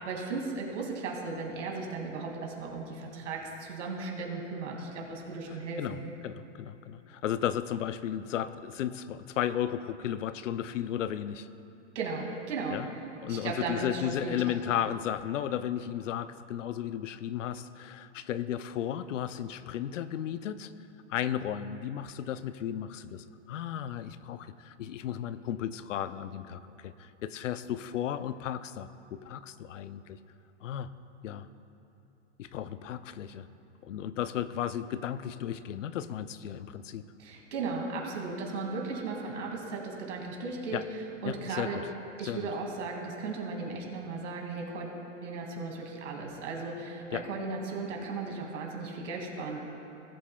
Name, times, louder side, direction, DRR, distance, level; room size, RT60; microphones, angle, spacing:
voice 1, 0.1-6.0 11.9-12.8 13.3-14.4 37.2-41.8 42.2-44.9 45.2-49.6, right 4 dB, 80° right, 0 dB, 2.3 m, -36 dB
voice 2, 6.2-11.5 12.7-12.9 13.2-20.7 21.1-30.2 30.6-30.9 31.2-31.5 32.4-33.5 33.8-37.0 40.7-40.8 41.2-41.9 42.2-42.5 47.1-47.2, left 10 dB, 85° left, 13 dB, 0.6 m, -34 dB
18.5 x 8.5 x 2.3 m, 3.0 s
hypercardioid pair, 135°, 36 cm